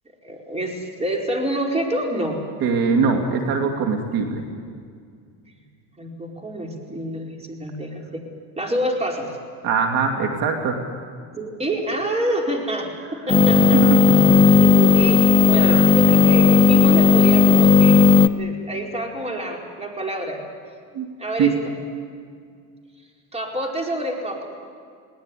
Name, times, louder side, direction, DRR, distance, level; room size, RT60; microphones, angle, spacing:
voice 1, 0.2-2.4 6.0-8.2 8.6-9.3 11.4-13.8 14.5-20.4 21.2-21.5 23.3-24.5, right 1 dB, 15° right, 0 dB, 4.7 m, -27 dB
voice 2, 2.6-4.4 9.6-10.8 13.6-14.1 15.6-15.9 20.9-21.1 21.4-21.5, right 5 dB, 65° right, 3 dB, 2.7 m, -22 dB
sound 1, 13.3-18.3, left 5 dB, 15° left, 0.8 m, -14 dB
21.0 x 19.0 x 9.9 m, 2.1 s
supercardioid pair, 105°, 38 cm